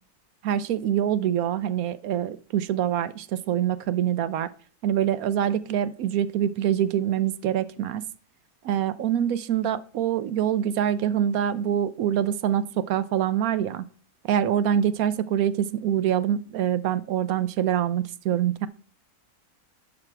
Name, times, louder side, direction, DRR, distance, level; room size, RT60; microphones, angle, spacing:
voice 1, 0.4-4.5 4.8-8.0 8.6-13.8 14.2-18.7, right 10 dB, 70° right, 15 dB, 1.0 m, -25 dB
11.5 x 6.0 x 3.3 m, 0.42 s
omnidirectional pair, 1.6 m